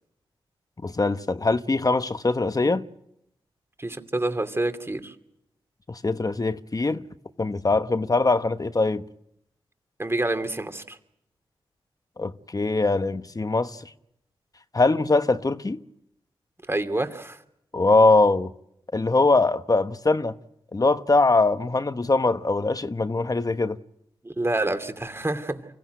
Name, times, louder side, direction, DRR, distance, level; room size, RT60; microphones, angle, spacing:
voice 1, 0.8-2.8 5.9-7.0 7.4-9.0 12.2-13.9 14.7-15.8 17.7-18.5 18.9-20.3 20.7-23.8, left 3 dB, 35° left, 1.1 m, -22 dB
voice 2, 3.8-5.1 10.0-11.0 16.7-17.4 24.2-25.6, right 2 dB, 25° right, 2.6 m, -27 dB
24.5 x 15.5 x 9.3 m
cardioid pair, 40°, 10 cm